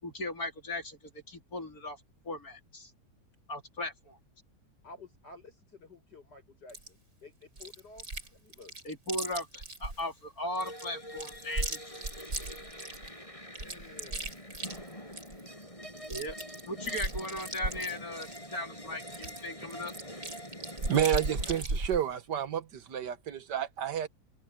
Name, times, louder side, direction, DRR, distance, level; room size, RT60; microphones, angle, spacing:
voice 1, 0.0-2.0 2.2-2.9 3.5-4.2 8.8-12.0 16.1-16.4 16.7-19.9, left 1 dB, 60° left, 4.7 m, -38 dB
voice 2, 4.8-8.0 8.3-8.7 13.6-14.4, left 3 dB, 75° left, 8.0 m, -52 dB
Chewing mastication, 6.7-6.9 7.6-8.3 8.5-10.0 10.6-13.1 13.5-15.4 15.7-15.8 16.0-18.5 19.0-22.0, right 2 dB, 55° right, 5.9 m, -36 dB
sound 1, 10.6-21.6, equal, 20° left, 7.7 m, -45 dB
voice 3, 20.9-24.1, right 9 dB, 90° right, 1.9 m, -30 dB
omnidirectional pair, 1.8 m